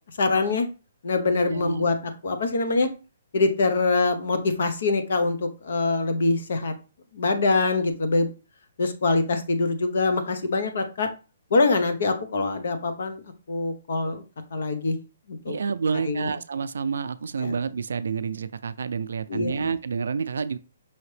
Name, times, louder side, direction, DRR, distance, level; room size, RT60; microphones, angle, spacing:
voice 1, 0.2-0.7 1.0-2.0 2.2-2.9 3.3-6.7 7.1-8.3 8.8-11.1 11.5-13.2 13.5-14.2 14.5-15.0 15.3-15.6 16.1-16.3 17.4-17.5 19.3-19.7, left 3 dB, 55° left, 0.7 m, -24 dB
voice 2, 1.4-1.9 15.5-20.6, right 5 dB, 75° right, 0.3 m, -29 dB
5.6 x 2.9 x 3.2 m
hypercardioid pair, 175°, 0 cm